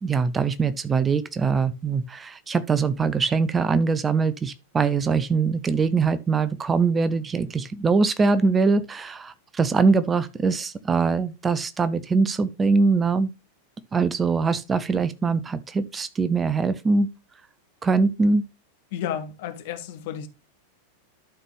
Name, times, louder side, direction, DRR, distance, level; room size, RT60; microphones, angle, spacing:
voice 1, 0.0-13.3 13.9-17.1 17.8-18.4, right 4 dB, 15° right, 0.5 m, -22 dB
voice 2, 18.9-20.3, left 9 dB, 50° left, 1.2 m, -32 dB
12.0 x 4.1 x 3.5 m
figure-of-eight pair, 90°, 0 cm